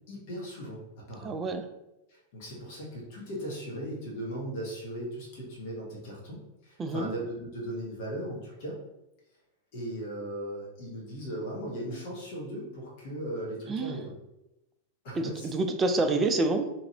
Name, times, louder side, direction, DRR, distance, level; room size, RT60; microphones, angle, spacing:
voice 1, 0.1-1.4 2.1-8.8 9.7-14.1 15.0-15.5, right 1 dB, 50° left, -3 dB, 1.1 m, -38 dB
voice 2, 1.2-1.7 6.8-7.1 13.7-14.0 15.2-16.7, right 2 dB, 20° right, 7 dB, 0.3 m, -28 dB
2.9 x 2.5 x 2.8 m, 0.92 s
figure-of-eight pair, 90°, 0 cm